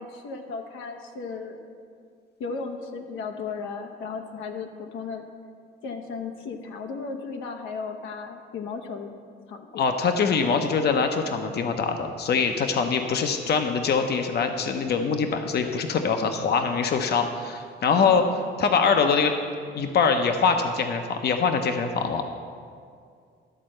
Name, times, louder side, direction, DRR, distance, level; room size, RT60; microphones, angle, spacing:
voice 1, 0.0-1.6 2.4-5.2 5.8-9.1 9.5-9.9 18.0-18.4, left 5 dB, 85° left, 4 dB, 0.9 m, -35 dB
voice 2, 9.7-18.2 18.6-19.3 19.7-22.2, left 5 dB, 55° left, 6 dB, 0.8 m, -23 dB
12.5 x 4.2 x 7.7 m, 2.2 s
cardioid pair, 90°, 20 cm